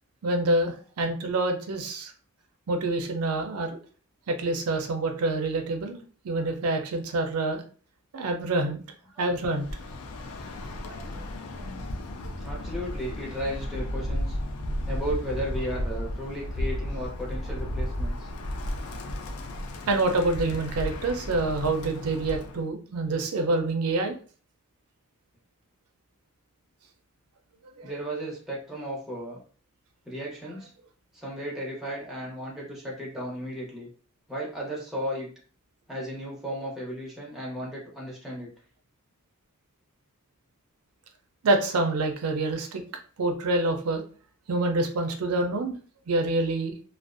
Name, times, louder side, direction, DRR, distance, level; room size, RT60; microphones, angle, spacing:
voice 1, 0.2-2.1 2.7-3.8 4.3-6.0 6.2-7.6 8.1-8.8 9.2-9.7 19.9-24.2 27.8-27.9 41.4-42.8 43.2-44.0 44.5-45.8 46.1-46.7, right 2 dB, 90° right, 4 dB, 0.5 m, -26 dB
Bird, 9.5-22.6, left 1 dB, 90° left, 0.4 m, -34 dB
voice 2, 10.8-11.1 12.4-14.4 14.9-18.3 27.8-29.4 30.0-30.7 31.1-33.9 34.3-35.3 35.9-38.5, equal, ahead, -4 dB, 0.7 m, -35 dB
2.4 x 2.0 x 2.4 m, 0.41 s
head